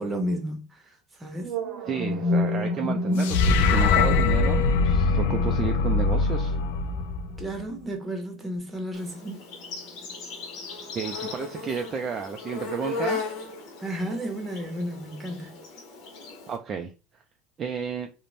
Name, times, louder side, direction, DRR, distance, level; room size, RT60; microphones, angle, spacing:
voice 1, 0.0-1.5 7.4-9.4 13.8-15.6, equal, 15° right, 0.9 m, -33 dB
sound 1, 1.4-9.4, left 1 dB, 60° right, 0.7 m, -31 dB
voice 2, 1.9-6.5 10.9-13.2 16.5-16.9 17.6-18.1, right 6 dB, 35° right, 0.3 m, -32 dB
sound 2, 3.2-7.6, left 4 dB, 85° left, 0.3 m, -22 dB
Insect, 8.9-16.6, left 4 dB, 65° left, 0.9 m, -37 dB
2.5 x 2.1 x 3.2 m
supercardioid pair, 110°, 0 cm